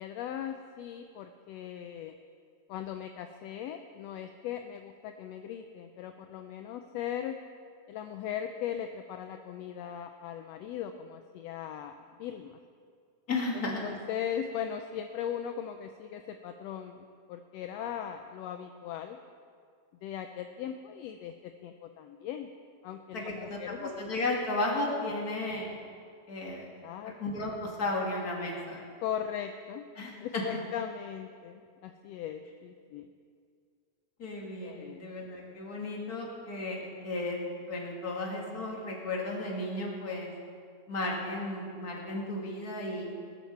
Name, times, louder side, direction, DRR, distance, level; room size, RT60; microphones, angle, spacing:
voice 1, 0.0-2.1 2.7-7.3 7.9-12.6 13.5-19.2 20.0-21.3 21.6-22.5 22.8-23.9 26.4-27.1 29.0-29.8 30.2-33.1 34.6-35.0, left 9 dB, 75° left, 6 dB, 1.6 m, -39 dB
voice 2, 13.3-13.9 23.1-25.7 26.3-26.7 27.0-28.8 30.0-30.6 34.2-40.3 40.9-43.1, left 2 dB, 35° left, -2 dB, 2.5 m, -34 dB
18.0 x 13.0 x 4.6 m, 2.2 s
omnidirectional pair, 3.4 m